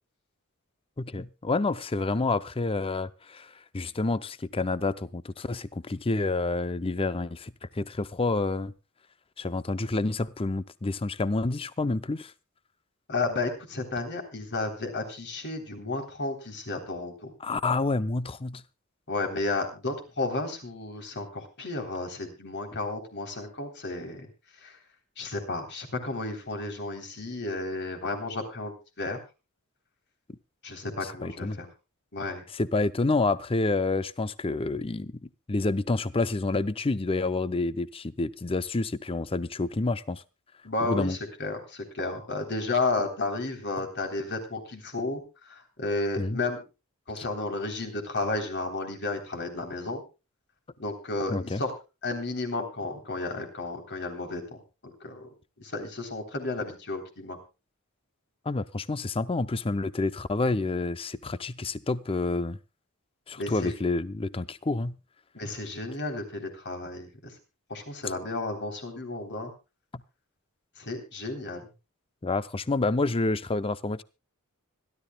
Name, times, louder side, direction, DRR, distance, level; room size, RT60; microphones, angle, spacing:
voice 1, 1.0-8.7 9.4-12.3 17.4-18.6 31.0-31.6 32.5-40.2 40.8-41.2 46.2-46.4 47.2-47.3 51.3-51.6 58.5-62.6 63.3-65.0 72.2-74.0, left 3 dB, 25° left, 0.6 m, -28 dB
voice 2, 13.1-17.3 19.1-24.3 24.6-24.8 25.2-29.2 30.6-31.7 32.1-32.4 40.6-46.6 47.1-50.0 50.8-51.7 52.0-54.6 54.8-55.3 55.6-57.4 63.4-63.7 65.3-67.3 67.7-69.5 70.8-71.7, left 2 dB, 50° left, 3.5 m, -32 dB
25.5 x 12.0 x 2.3 m
head